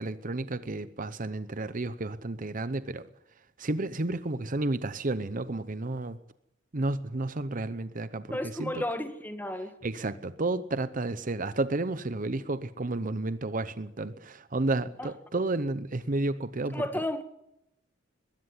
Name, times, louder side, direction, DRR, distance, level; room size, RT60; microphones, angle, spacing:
voice 1, 0.0-3.1 3.6-6.2 6.7-8.8 9.8-16.8, right 2 dB, 40° right, 0.8 m, -31 dB
voice 2, 8.3-9.8 15.0-15.1 16.7-17.2, left 1 dB, 10° left, 1.9 m, -33 dB
21.0 x 16.0 x 10.0 m
head